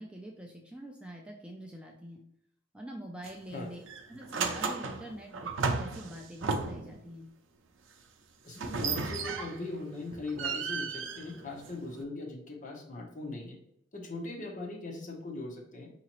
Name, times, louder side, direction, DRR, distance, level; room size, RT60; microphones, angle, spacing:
voice 1, 0.0-2.2 2.7-3.8 4.1-7.3, right 1 dB, 5° right, 0 dB, 0.3 m, -45 dB
sound 1, 3.2-3.5 3.8-7.0 8.5-9.8 10.1-12.0, right 4 dB, 80° right, 0.5 m, -34 dB
voice 2, 8.4-13.6 13.9-15.9, left 2 dB, 40° left, -1 dB, 0.9 m, -40 dB
4.8 x 2.9 x 3.0 m, 0.73 s
head